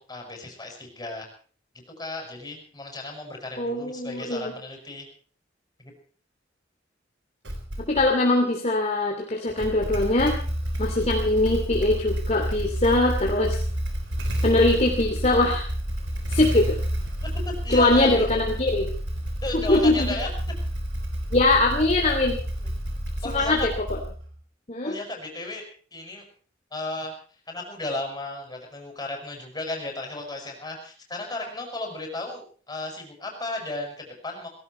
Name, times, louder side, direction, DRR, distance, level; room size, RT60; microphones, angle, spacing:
voice 1, 0.1-1.3 1.9-5.1 5.8-5.9 17.4-18.4 19.4-20.3 22.6-22.7 23.2-23.7 24.8-25.6 25.9-26.2 26.7-27.1 27.5-34.5, left 2 dB, 20° left, 1 dB, 6.7 m, -34 dB
voice 2, 3.6-4.5 7.9-10.3 10.8-13.6 14.4-15.7 16.3-16.8 17.7-18.9 19.5-20.1 21.3-22.4 23.2-24.0 24.7-24.9, left 2 dB, 35° left, 0 dB, 2.9 m, -22 dB
Motorcycle / Engine starting, 7.4-8.1 9.5-24.4, equal, 70° right, 3.8 m, -29 dB
18.0 x 17.5 x 4.6 m, 0.43 s
head